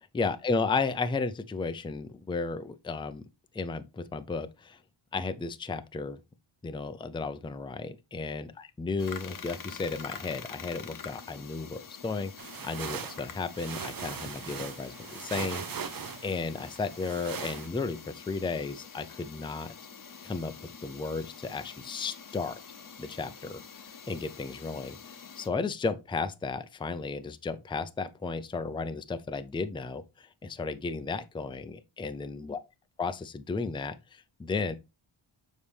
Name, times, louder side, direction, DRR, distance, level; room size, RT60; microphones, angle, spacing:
voice 1, 0.1-3.2 3.5-4.8 5.1-6.2 6.6-19.7 20.2-22.6 23.0-23.6 24.1-32.6 33.0-34.8, left 4 dB, 10° left, 0.3 m, -34 dB
sound 1, 9.0-25.5, left 6 dB, 40° left, 0.7 m, -46 dB
sound 2, 12.4-17.7, right 7 dB, 45° right, 0.6 m, -39 dB
7.0 x 4.1 x 3.2 m
wide cardioid pair, 110°, 49 cm